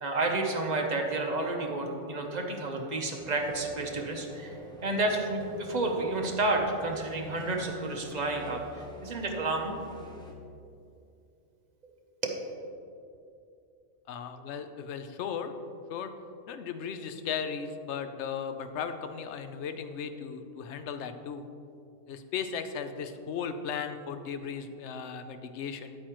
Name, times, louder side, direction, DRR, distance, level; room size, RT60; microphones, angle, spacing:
voice 1, 0.0-4.5 4.8-8.6 9.0-9.8 12.2-12.4, right 2 dB, 40° right, 2 dB, 0.8 m, -30 dB
sound 1, 3.2-10.3, equal, 5° left, 0.7 m, -47 dB
voice 2, 14.1-15.5 15.9-16.1 16.5-21.4 22.1-26.0, left 7 dB, 65° left, 9 dB, 0.8 m, -36 dB
9.7 x 8.5 x 3.0 m, 2.5 s
omnidirectional pair, 1.4 m